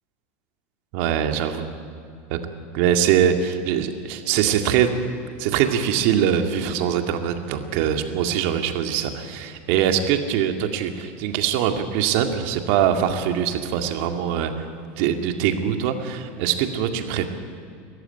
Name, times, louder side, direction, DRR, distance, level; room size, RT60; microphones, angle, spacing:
voice 1, 0.9-1.7 2.3-2.4 2.7-4.9 5.4-14.5 15.0-17.2, right 9 dB, 65° right, 6 dB, 2.1 m, -22 dB
21.5 x 14.0 x 9.9 m, 2.5 s
supercardioid pair, 145°, 7 cm